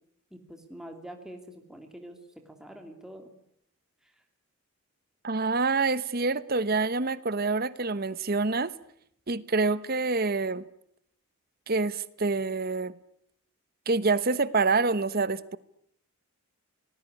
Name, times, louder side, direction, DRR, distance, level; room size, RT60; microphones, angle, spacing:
voice 1, 0.3-2.2 2.5-3.3, right 1 dB, ahead, 2.8 m, -45 dB
voice 2, 5.2-8.7 9.3-10.6 11.7-13.0 13.9-15.6, right 3 dB, 40° right, 1.1 m, -26 dB
28.0 x 19.5 x 9.8 m
head